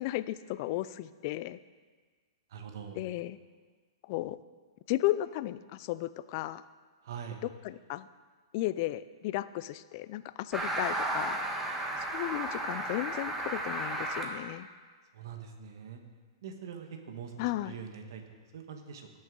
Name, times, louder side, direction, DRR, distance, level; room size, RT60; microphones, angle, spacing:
voice 1, 0.0-1.6 3.0-3.4 4.1-4.4 4.9-6.6 7.4-8.1 8.5-11.4 12.0-14.7 17.4-17.7, left 16 dB, 50° left, 15 dB, 0.4 m, -34 dB
voice 2, 2.5-3.1 7.0-7.4 15.1-16.0 16.4-19.1, right 7 dB, 65° right, 5 dB, 1.5 m, -43 dB
sound 1, 10.5-14.2, right 1 dB, 10° right, 1.4 m, -33 dB
17.0 x 6.4 x 3.9 m, 1.4 s
hypercardioid pair, 125°, 2 cm